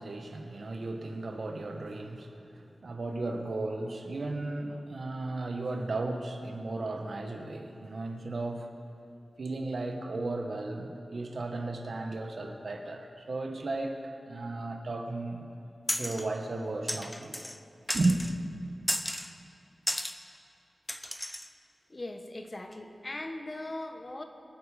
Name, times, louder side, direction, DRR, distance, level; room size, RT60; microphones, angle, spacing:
voice 1, 0.0-8.7 9.4-15.5 16.0-17.4 17.9-18.3, right 2 dB, 60° right, 4 dB, 1.4 m, -34 dB
sound 1, 15.9-16.3 16.9-17.6 17.9-18.3 18.9-19.3 19.9-20.2 20.9-21.5, equal, 10° left, 0.6 m, -33 dB
voice 2, 21.9-24.2, left 2 dB, 35° left, 5 dB, 1.3 m, -39 dB
24.0 x 9.0 x 5.1 m, 2.6 s
wide cardioid pair, 105°, 0 cm